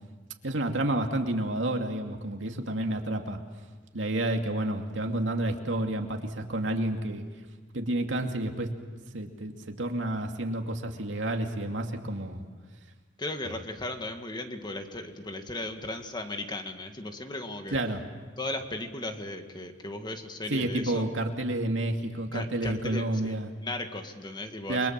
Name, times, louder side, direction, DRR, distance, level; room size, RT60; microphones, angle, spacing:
voice 1, 0.4-3.4 3.9-7.2 7.7-8.7 9.1-12.4 13.4-13.5 17.7-18.0 20.5-23.5 24.7-24.9, right 1 dB, 85° right, 3 dB, 2.5 m, -30 dB
voice 2, 13.2-17.8 18.4-21.0 22.3-24.9, left 2 dB, 25° left, 5 dB, 1.9 m, -36 dB
30.0 x 23.0 x 7.6 m, 1.4 s
head